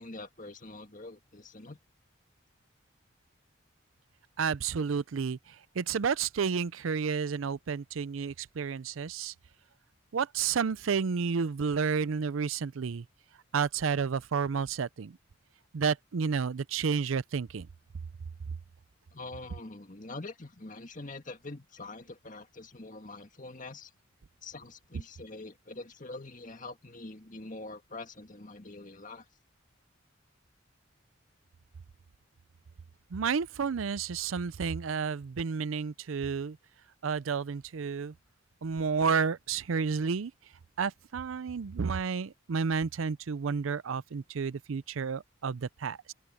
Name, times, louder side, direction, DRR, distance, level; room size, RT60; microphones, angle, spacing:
voice 1, 0.0-1.8 19.1-23.9 24.4-29.2, left 2 dB, 40° left, 2.0 m, -44 dB
voice 2, 4.4-9.3 10.1-13.1 13.5-15.2 15.7-17.7 33.1-36.6 37.0-38.1 38.6-40.3 40.8-46.1, right 6 dB, 90° right, 0.5 m, -31 dB
open air
head